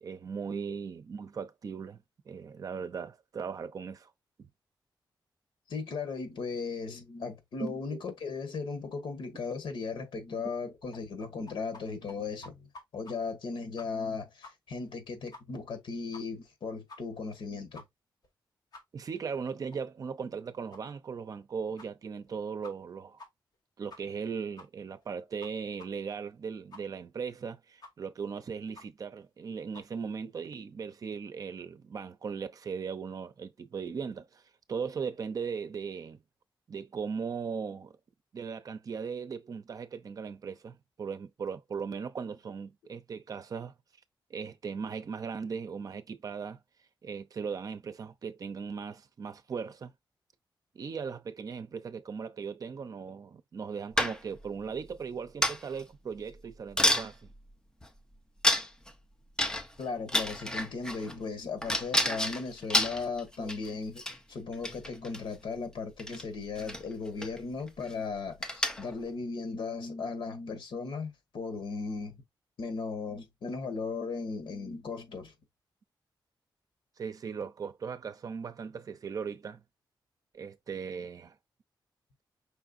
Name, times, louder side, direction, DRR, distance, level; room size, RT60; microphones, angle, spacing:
voice 1, 0.0-4.1 4.4-4.5 7.6-8.0 10.1-10.2 18.9-23.2 23.8-34.4 34.7-36.2 36.7-38.0 38.3-43.7 44.3-46.6 47.0-49.9 50.7-57.2 63.4-63.5 77.0-79.6 80.3-81.3, right 6 dB, 45° right, 0.6 m, -38 dB
voice 2, 5.7-17.8 59.8-64.0 64.3-72.2 72.6-75.3, left 4 dB, 90° left, 1.5 m, -37 dB
sound 1, 10.9-11.8 12.1-12.2 12.4-13.1 13.4-13.5 13.8-14.1 14.4-14.5 14.8-14.9 15.3-15.4 15.7-15.8 16.1-16.5 16.9-17.0 17.3-17.4 17.7-17.8 18.2-18.3 18.7-18.8 19.2-19.3 19.7-19.8 20.2-20.3 20.7-20.8 21.3-21.4 21.8-21.9 22.3-22.4 22.6-22.9 23.2-23.3 23.5-23.6 23.9-24.2 24.6-24.7 25.0-25.1 25.4-25.5 25.8-25.9 26.2-26.3 26.7-26.8 27.2-27.3 27.8-27.9 28.2-28.3 28.7-28.8 29.2-29.3 29.7-29.9, left 3 dB, 55° left, 1.7 m, -49 dB
sound 2, 54.0-54.5 55.4-55.8 56.3-56.4 56.8-57.1 57.8-57.9 58.4-58.9 59.4-59.8 60.1-61.1 61.6-63.7 64.0-64.2 64.5-65.2 66.0-66.2 66.6-66.8 67.2-67.4 67.7-67.9 68.4-68.9, left 1 dB, 10° left, 0.6 m, -29 dB
5.6 x 3.5 x 2.5 m
wide cardioid pair, 175°, 8 cm